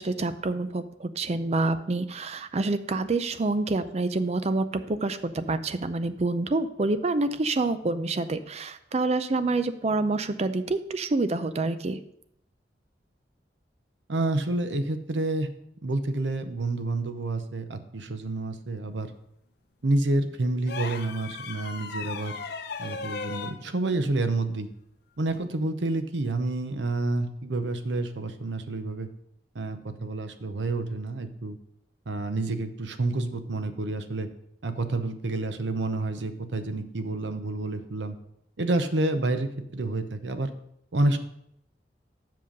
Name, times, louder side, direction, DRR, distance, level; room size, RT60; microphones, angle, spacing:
voice 1, 0.0-12.0, right 2 dB, 35° right, 12 dB, 0.5 m, -27 dB
voice 2, 14.1-15.5 15.8-19.1 19.8-22.3 22.8-24.7 25.2-29.1 29.5-31.6 32.1-34.3 34.6-38.2 38.6-40.5 40.9-41.2, right 2 dB, 80° right, 9 dB, 0.8 m, -29 dB
sound 1, 20.6-23.6 25.3-25.4, left 4 dB, 60° left, 0.7 m, -36 dB
7.6 x 5.7 x 5.1 m, 0.75 s
head